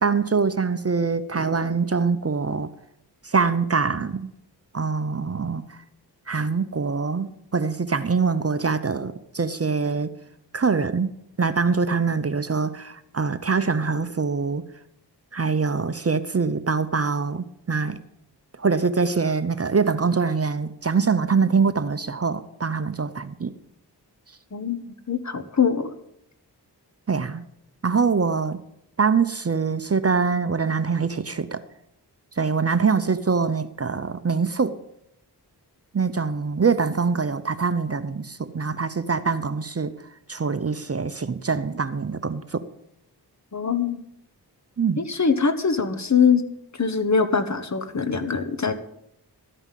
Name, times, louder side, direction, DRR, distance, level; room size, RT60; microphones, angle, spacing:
voice 1, 0.0-2.7 3.2-4.3 4.7-5.6 6.3-10.1 10.5-11.1 11.4-14.6 15.3-18.0 18.6-23.5 27.1-27.4 27.8-28.6 29.0-31.6 32.4-34.8 35.9-39.9 40.3-42.6 44.8-45.0, right 5 dB, 35° right, 12 dB, 0.7 m, -24 dB
voice 2, 24.5-25.9 43.5-44.0 45.0-46.4 46.8-48.7, left 6 dB, 40° left, 10 dB, 1.1 m, -22 dB
13.0 x 5.5 x 8.2 m, 0.79 s
cardioid pair, 55°, 41 cm